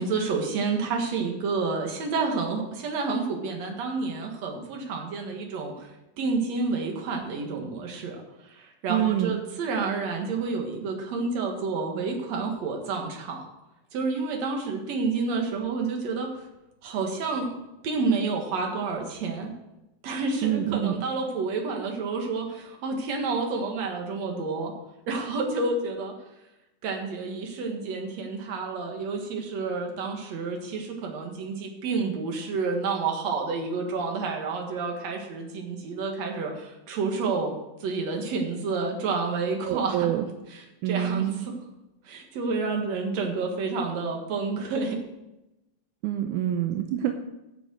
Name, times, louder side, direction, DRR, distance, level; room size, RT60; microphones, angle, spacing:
voice 1, 0.0-5.9 6.2-13.5 13.9-16.4 16.8-17.6 17.8-19.5 20.0-24.7 25.1-26.1 26.8-37.5 37.8-40.2 40.5-41.5 42.1-45.0, right 4 dB, 60° right, 2 dB, 2.8 m, -29 dB
voice 2, 8.9-9.4 20.4-20.9 39.6-40.3 40.8-41.4 46.0-47.2, right 11 dB, 85° right, 5 dB, 2.2 m, -26 dB
11.0 x 7.3 x 6.3 m, 0.95 s
omnidirectional pair, 3.5 m